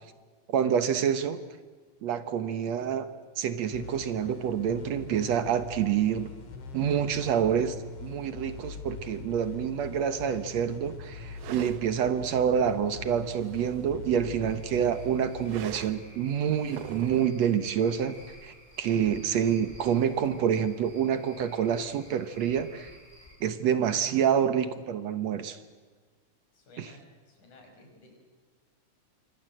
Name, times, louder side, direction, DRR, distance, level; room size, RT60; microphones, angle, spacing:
voice 1, 0.5-1.4 2.0-3.1 3.4-6.3 6.7-7.8 8.0-18.2 18.4-22.9 23.4-25.6 26.8-26.9, right 8 dB, 65° right, 11 dB, 2.2 m, -27 dB
sound 1, 3.7-17.0, left 4 dB, 55° left, 3.2 m, -43 dB
sound 2, 11.4-11.8 13.0-14.2 15.4-16.0 16.5-17.4, right 10 dB, 85° right, 2.6 m, -43 dB
Cricket / Frog, 14.4-23.3, equal, 5° left, 6.8 m, -53 dB
voice 2, 26.5-28.1, left 1 dB, 75° left, 3 dB, 6.7 m, -55 dB
27.5 x 24.0 x 7.8 m, 1.5 s
omnidirectional pair, 3.5 m